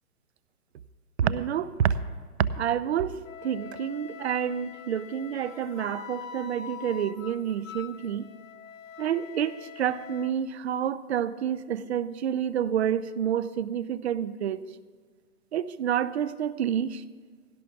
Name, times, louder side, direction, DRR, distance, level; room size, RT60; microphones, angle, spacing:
voice 1, 1.2-1.9 2.5-3.1 3.4-8.3 9.0-14.6 15.5-17.0, right 9 dB, 45° right, 16 dB, 0.6 m, -28 dB
Wind instrument woodwind instrument, 3.2-10.3, left 8 dB, 55° left, 1.0 m, -44 dB
17.5 x 16.5 x 3.5 m, 1.5 s
figure-of-eight pair, 130°, 46 cm